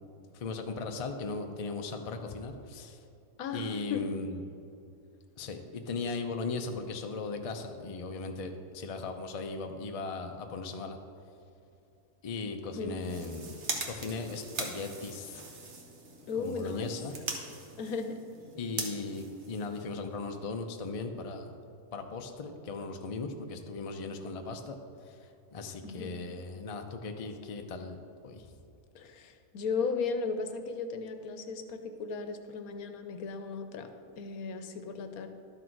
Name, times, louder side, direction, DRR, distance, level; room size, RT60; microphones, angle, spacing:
voice 1, 0.3-3.0 3.5-4.4 5.4-11.0 12.2-13.6 13.9-15.4 16.4-17.1 18.5-21.5 21.9-24.8 25.0-25.2 25.5-28.5, left 3 dB, 55° left, 5 dB, 0.4 m, -38 dB
voice 2, 3.4-4.0 12.8-13.2 16.3-16.9 17.8-18.2 25.8-26.2 28.9-35.3, left 4 dB, 70° left, 8 dB, 1.2 m, -36 dB
sound 1, 12.9-20.2, right 3 dB, 50° right, 1.3 m, -41 dB
12.0 x 6.3 x 4.6 m, 2.7 s
omnidirectional pair, 1.6 m